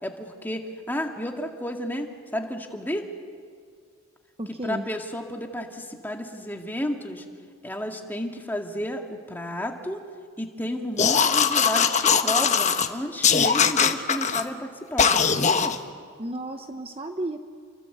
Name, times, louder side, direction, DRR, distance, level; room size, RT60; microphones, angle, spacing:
voice 1, 0.0-3.1 4.6-7.2 7.6-10.1 10.4-15.8, equal, 10° left, 2 dB, 2.1 m, -32 dB
voice 2, 4.4-4.8 16.2-17.4, right 1 dB, 30° right, 6 dB, 1.0 m, -33 dB
sound 1, 11.0-12.9 13.2-14.4 15.0-15.8, left 6 dB, 35° left, 1.2 m, -20 dB
29.5 x 23.5 x 8.0 m, 2.1 s
head